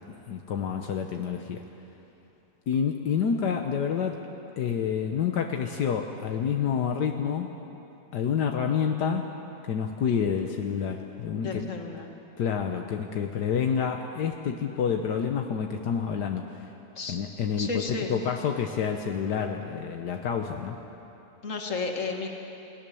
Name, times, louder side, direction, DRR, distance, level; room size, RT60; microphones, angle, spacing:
voice 1, 0.1-1.6 2.7-4.2 4.6-7.5 8.1-9.3 9.7-11.7 12.4-16.5 17.1-17.7 18.1-20.8, left 7 dB, 80° left, 4 dB, 1.6 m, -28 dB
voice 2, 11.3-12.1 17.0-17.2 17.6-18.1 21.4-22.3, left 4 dB, 50° left, 2 dB, 2.2 m, -32 dB
29.5 x 17.5 x 7.0 m, 3.0 s
omnidirectional pair, 1.8 m